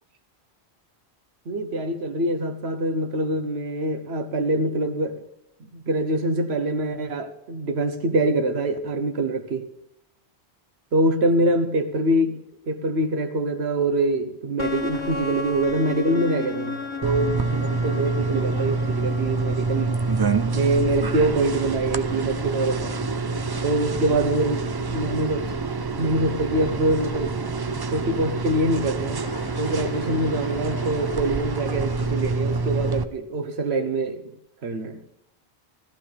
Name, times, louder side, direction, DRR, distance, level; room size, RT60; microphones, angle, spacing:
voice 1, 1.5-5.2 5.7-9.7 10.9-12.4 12.7-20.0 20.5-23.0 23.6-24.6 24.9-25.5 26.0-27.3 27.9-29.2 29.6-34.2 34.6-35.0, right 1 dB, 75° right, 1.3 m, -24 dB
sound 1, 14.6-32.9, left 3 dB, 30° left, 1.0 m, -36 dB
sound 2, 17.0-33.0, right 4 dB, 40° right, 0.3 m, -27 dB
14.5 x 14.5 x 3.4 m
omnidirectional pair, 1.1 m